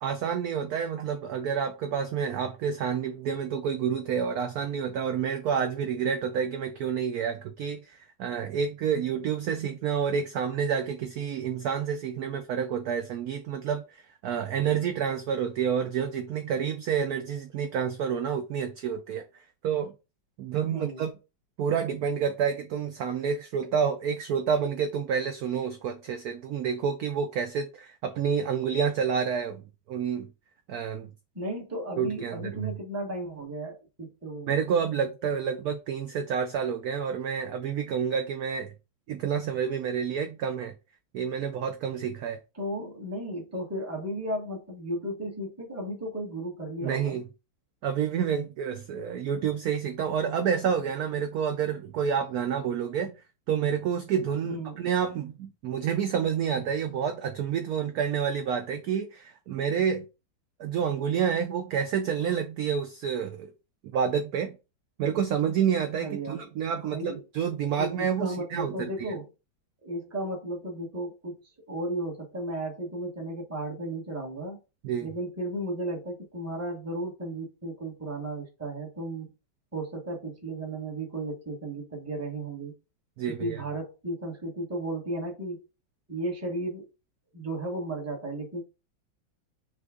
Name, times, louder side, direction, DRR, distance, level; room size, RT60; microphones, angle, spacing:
voice 1, 0.0-19.9 20.4-21.1 21.6-30.3 30.7-31.1 32.0-32.8 34.5-38.7 39.1-40.7 41.1-42.4 46.8-47.3 47.8-53.2 53.5-60.1 60.6-63.5 63.9-64.6 65.0-69.1 74.8-75.1 83.2-83.6, right 7 dB, 75° right, 0.8 m, -29 dB
voice 2, 20.7-21.1 31.3-34.5 42.5-47.2 54.4-54.8 66.0-67.2 67.8-69.3 69.8-71.4 71.7-74.6 75.0-79.3 79.7-82.7 83.4-85.6 86.1-86.9 87.3-88.6, right 1 dB, 10° right, 0.9 m, -34 dB
6.0 x 2.4 x 3.6 m
omnidirectional pair, 2.1 m